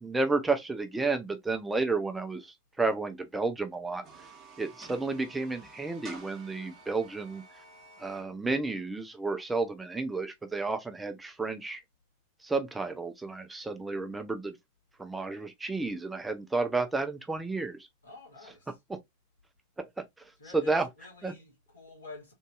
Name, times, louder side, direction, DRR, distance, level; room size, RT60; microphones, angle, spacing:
voice 1, 0.0-4.0 4.6-7.4 8.0-11.8 12.4-14.5 15.0-17.9 20.5-20.9 21.2-21.3, right 3 dB, 10° right, 0.4 m, -31 dB
sound 1, 3.9-8.2, right 3 dB, 30° right, 1.1 m, -51 dB
voice 2, 18.0-18.8 20.4-22.3, left 3 dB, 70° left, 1.9 m, -49 dB
3.5 x 2.6 x 2.3 m
figure-of-eight pair, 90°, 0 cm